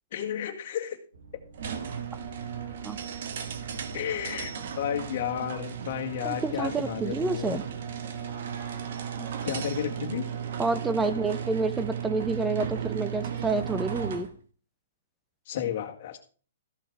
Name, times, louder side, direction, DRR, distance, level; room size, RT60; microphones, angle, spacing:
voice 1, 0.1-1.0 3.9-7.6 9.4-10.3 15.5-16.2, left 9 dB, 50° left, 4 dB, 1.8 m, -32 dB
sound 1, 1.1-8.8, right 1 dB, 90° right, 2.2 m, -52 dB
sound 2, 1.5-14.4, right 8 dB, 60° right, 1.4 m, -35 dB
voice 2, 6.2-7.6 9.2-9.3 10.6-14.3, right 3 dB, 10° right, 13 dB, 0.7 m, -29 dB
14.0 x 5.8 x 4.7 m, 0.41 s
hypercardioid pair, 155°, 0 cm